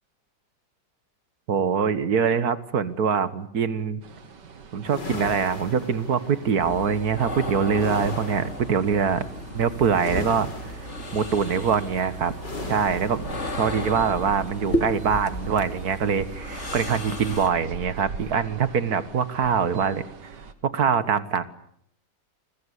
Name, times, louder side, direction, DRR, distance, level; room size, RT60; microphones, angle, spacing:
voice 1, 1.5-4.0 4.7-9.2 9.5-10.5 11.1-12.3 12.7-20.0 20.6-21.4, right 6 dB, 60° right, 13 dB, 1.9 m, -24 dB
sound 1, 4.0-20.5, right 5 dB, 80° right, 2.4 m, -43 dB
sound 2, 4.8-6.4 7.7-8.7 9.9-11.0 12.4-13.4, left 2 dB, 85° left, 5.1 m, -36 dB
sound 3, 6.6-17.5, equal, 40° left, 3.1 m, -33 dB
28.0 x 22.0 x 8.3 m, 0.67 s
omnidirectional pair, 1.9 m